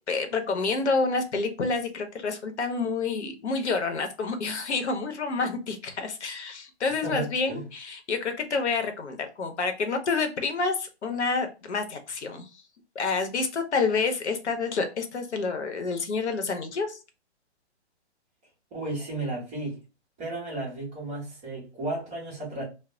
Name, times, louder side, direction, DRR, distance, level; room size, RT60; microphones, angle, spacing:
voice 1, 0.1-12.5 12.9-17.0, left 4 dB, 80° left, 0.8 m, -28 dB
voice 2, 6.9-7.6 18.7-19.8 20.2-22.6, right 2 dB, 5° right, 0.4 m, -34 dB
2.1 x 2.0 x 3.6 m
hypercardioid pair, 155°, 34 cm